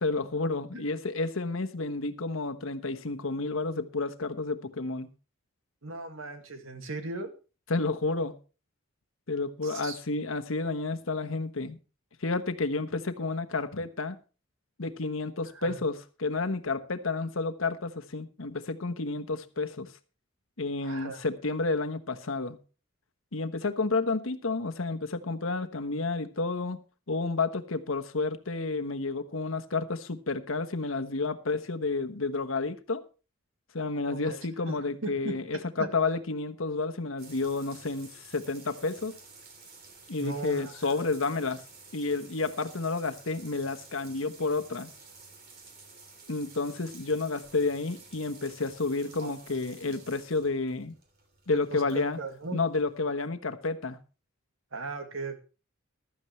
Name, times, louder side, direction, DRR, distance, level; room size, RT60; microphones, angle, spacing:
voice 1, 0.0-5.1 7.7-8.3 9.3-11.8 12.2-14.2 14.8-19.9 20.6-22.6 23.3-26.8 27.1-33.0 33.7-39.2 40.1-41.6 41.9-44.9 46.3-50.9 51.5-52.2 52.5-54.0, left 3 dB, 75° left, 1.2 m, -30 dB
voice 2, 5.8-7.3 9.6-10.0 15.5-15.8 20.8-21.2 34.1-34.4 34.7-34.8 35.0-35.9 40.2-41.0 49.2-49.4 51.5-52.6 54.7-55.4, right 3 dB, 75° right, 2.0 m, -38 dB
sound 1, 37.2-53.0, right 4 dB, 50° right, 3.2 m, -52 dB
15.0 x 12.5 x 3.2 m
head